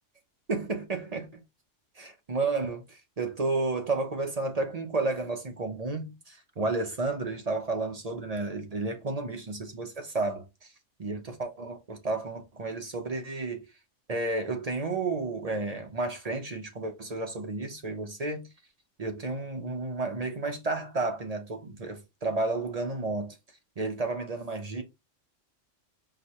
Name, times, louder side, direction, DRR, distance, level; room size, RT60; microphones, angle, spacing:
voice 1, 0.5-1.4 2.0-10.5 11.0-13.6 14.1-18.5 19.0-23.4 23.8-24.8, right 3 dB, 40° right, 0.6 m, -32 dB
4.9 x 2.7 x 3.0 m
omnidirectional pair, 1.3 m